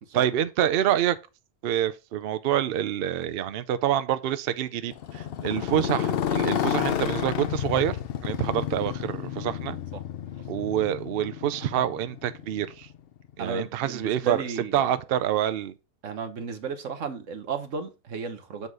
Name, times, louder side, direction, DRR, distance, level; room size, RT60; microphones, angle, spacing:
voice 1, 0.1-1.2 1.6-8.0 8.2-9.8 10.5-12.9 13.4-14.4 14.7-15.7, right 11 dB, 85° right, 0.5 m, -27 dB
Motorcycle, 4.9-13.0, left 10 dB, 80° left, 0.5 m, -30 dB
voice 2, 13.4-15.0 16.0-18.7, right 5 dB, 55° right, 1.3 m, -34 dB
7.2 x 4.0 x 4.7 m
omnidirectional pair, 1.7 m